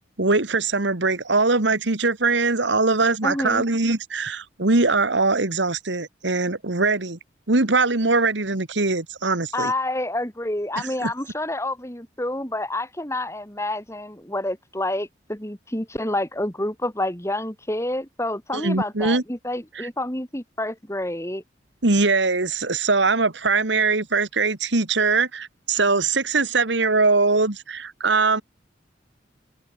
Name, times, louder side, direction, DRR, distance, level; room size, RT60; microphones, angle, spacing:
voice 1, 0.2-7.2 7.5-9.7 10.8-11.1 18.5-19.2 19.8-19.9 21.8-28.4, right 3 dB, 80° right, 1.9 m, -21 dB
voice 2, 3.2-3.7 9.5-21.4, left 1 dB, 15° left, 4.1 m, -28 dB
open air
head